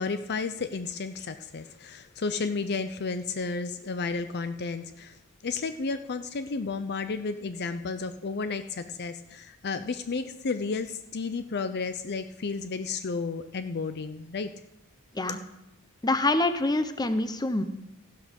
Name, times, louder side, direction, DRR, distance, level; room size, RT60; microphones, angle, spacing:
voice 1, 0.0-5.2 5.4-14.5, left 4 dB, 50° left, 10 dB, 0.6 m, -32 dB
voice 2, 16.0-17.6, left 2 dB, 20° left, 10 dB, 0.9 m, -25 dB
15.0 x 12.5 x 5.3 m, 0.90 s
head